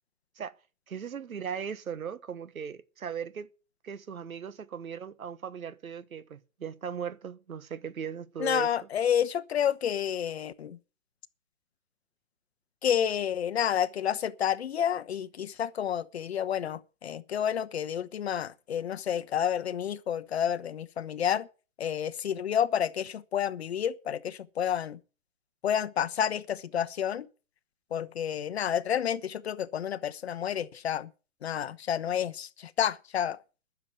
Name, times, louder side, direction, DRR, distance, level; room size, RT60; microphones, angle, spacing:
voice 1, 0.9-3.5 3.8-8.7, right 7 dB, 90° right, 1.4 m, -38 dB
voice 2, 8.4-10.8 12.8-21.5 21.8-25.0 25.6-27.3 27.9-31.1 31.4-33.4, left 9 dB, 50° left, 1.0 m, -30 dB
12.0 x 7.2 x 9.0 m
hypercardioid pair, 165°, 41 cm